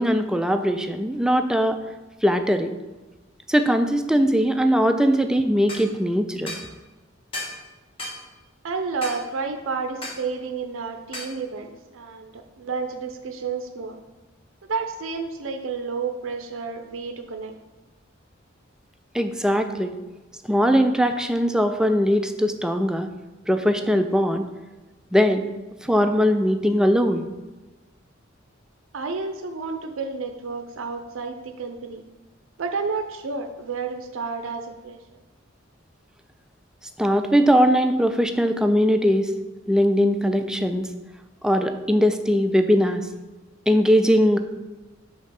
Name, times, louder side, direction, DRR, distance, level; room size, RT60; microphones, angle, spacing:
voice 1, 0.0-1.8 2.2-2.7 3.5-6.6 19.1-19.9 20.5-23.1 23.5-24.5 25.1-25.5 25.8-27.3 37.0-39.3 39.7-40.9 41.4-43.1 43.7-44.4, equal, 5° right, 7 dB, 0.3 m, -20 dB
sound 1, 5.7-5.9 6.5-6.7 7.3-7.6 8.0-8.2 9.0-9.2 10.0-10.2 11.1-11.3, left 1 dB, 30° left, 1.3 m, -33 dB
voice 2, 8.6-14.0 14.7-17.6 28.9-32.0 32.6-35.0, right 4 dB, 80° right, 7 dB, 0.5 m, -31 dB
5.2 x 3.6 x 5.7 m, 1.2 s
head